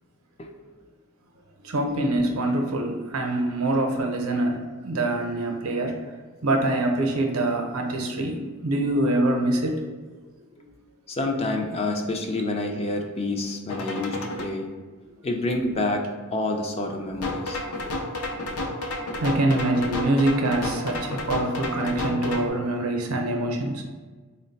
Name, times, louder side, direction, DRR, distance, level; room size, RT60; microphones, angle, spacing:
voice 1, 1.6-5.9 6.4-9.8 19.2-23.8, right 1 dB, 75° right, 2 dB, 0.6 m, -24 dB
voice 2, 11.1-14.7 15.2-17.6, left 2 dB, 30° left, 3 dB, 0.4 m, -28 dB
sound 1, 13.7-14.5 17.2-22.5, left 2 dB, 80° left, 0.5 m, -31 dB
3.8 x 2.1 x 3.9 m, 1.4 s
head